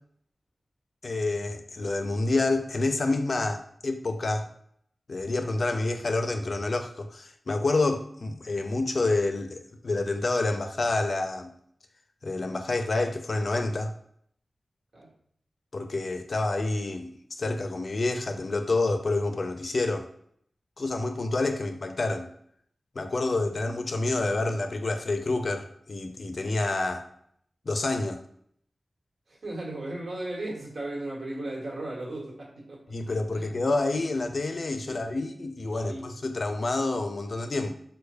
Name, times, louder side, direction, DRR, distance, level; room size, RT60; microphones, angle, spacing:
voice 1, 1.0-4.5 5.1-11.5 12.2-13.9 15.7-20.1 20.8-22.3 23.0-27.0 27.7-28.2 32.9-37.7, left 2 dB, 60° left, 6 dB, 0.4 m, -28 dB
voice 2, 29.3-32.9 33.3-33.5 34.9-35.4 35.7-36.0, right 2 dB, 80° right, -4 dB, 1.1 m, -36 dB
3.4 x 2.1 x 3.3 m, 0.67 s
wide cardioid pair, 70°, 0 cm